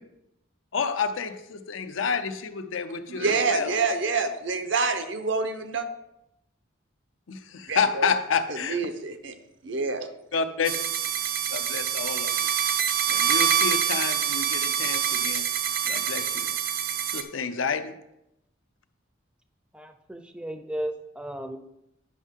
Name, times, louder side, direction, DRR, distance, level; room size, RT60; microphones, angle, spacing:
voice 1, 0.7-3.8 7.3-8.8 10.3-10.8 11.5-12.5 13.1-15.5 15.8-16.6 17.0-17.9, left 5 dB, 90° left, 9 dB, 0.6 m, -29 dB
voice 2, 3.1-5.9 7.7-8.1 8.6-9.3 9.6-10.1, right 4 dB, 75° right, 8 dB, 0.8 m, -27 dB
sound 1, 10.6-17.2, right 8 dB, 50° right, 0.6 m, -26 dB
voice 3, 19.7-21.6, right 1 dB, 5° right, 7 dB, 0.5 m, -35 dB
9.8 x 6.2 x 3.7 m, 0.84 s
head